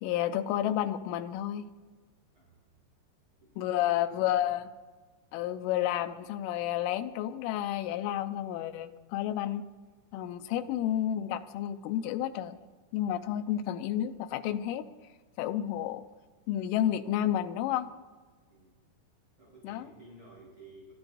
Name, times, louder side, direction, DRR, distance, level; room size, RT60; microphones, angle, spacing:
voice 1, 0.0-1.7 3.6-4.7 5.3-9.6 10.1-12.6 12.9-14.9 15.4-16.0 16.5-17.9 19.6-19.9, left 11 dB, 80° left, 9 dB, 3.0 m, -31 dB
voice 2, 3.4-4.6 10.4-10.6 18.5-18.8 19.4-20.9, right 1 dB, 35° right, -6 dB, 4.9 m, -54 dB
28.5 x 13.0 x 2.6 m, 1.4 s
omnidirectional pair, 5.9 m